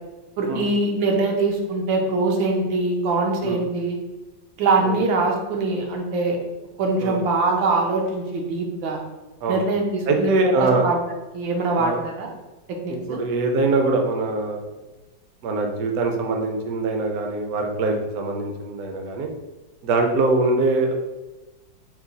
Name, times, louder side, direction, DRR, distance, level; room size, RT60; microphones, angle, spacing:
voice 1, 0.4-4.0 4.6-6.4 6.8-9.0 9.5-11.0 11.3-12.3 12.8-13.2, right 3 dB, 85° right, 1 dB, 1.5 m, -23 dB
voice 2, 10.1-10.8 11.8-12.0 13.1-14.6 15.4-19.3 19.8-20.9, right 3 dB, 70° right, 2 dB, 0.9 m, -23 dB
4.7 x 2.3 x 3.9 m, 1.1 s
omnidirectional pair, 2.1 m